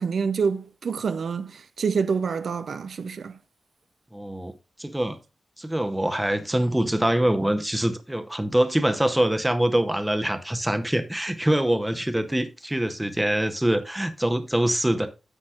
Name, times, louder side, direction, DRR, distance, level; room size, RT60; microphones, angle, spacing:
voice 1, 0.0-3.4, right 5 dB, 60° right, 0.5 m, -27 dB
voice 2, 4.1-4.5 4.8-5.2 5.6-15.1, right 1 dB, 5° right, 0.7 m, -24 dB
9.8 x 7.9 x 2.4 m
wide cardioid pair, 165°, 0 cm